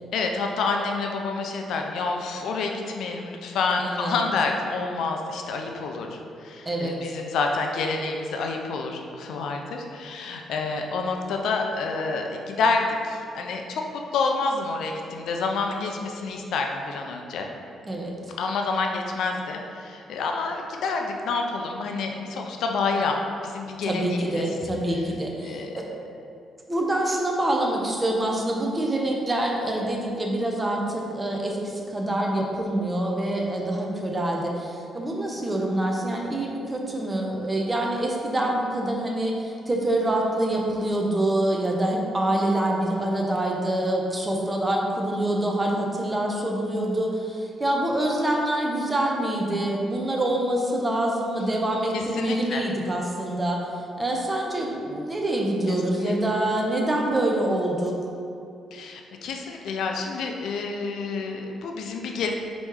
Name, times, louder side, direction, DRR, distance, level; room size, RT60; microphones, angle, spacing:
voice 1, 0.1-17.5 18.4-24.4 25.4-25.8 51.9-52.6 56.0-56.1 58.7-62.3, left 4 dB, 75° left, 2 dB, 0.5 m, -28 dB
voice 2, 3.8-4.2 6.7-7.0 17.9-18.1 23.8-25.9 26.7-58.0, right 1 dB, 20° right, 0 dB, 0.7 m, -26 dB
4.3 x 3.0 x 3.6 m, 2.6 s
cardioid pair, 90°, 0 cm